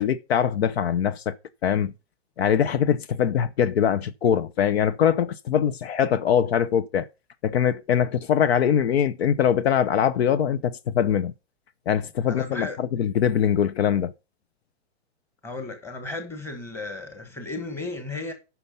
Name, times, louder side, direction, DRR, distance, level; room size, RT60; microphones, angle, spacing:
voice 1, 0.0-1.4 1.6-1.9 2.4-7.1 7.4-11.3 11.9-14.1, left 8 dB, 65° left, 0.8 m, -22 dB
voice 2, 12.3-12.8 15.4-18.3, left 2 dB, 5° left, 1.3 m, -34 dB
9.8 x 5.8 x 5.4 m
hypercardioid pair, 160°, 34 cm